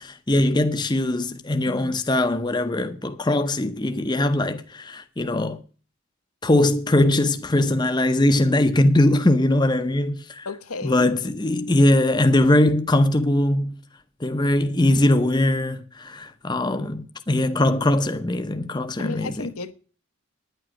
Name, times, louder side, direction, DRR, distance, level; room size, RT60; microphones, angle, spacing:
voice 1, 0.0-5.6 6.4-10.5 10.8-13.8 14.2-19.5, left 1 dB, 20° left, 0.7 m, -21 dB
voice 2, 10.4-11.1 19.0-19.7, left 3 dB, 80° left, 1.2 m, -33 dB
10.0 x 8.9 x 6.2 m
head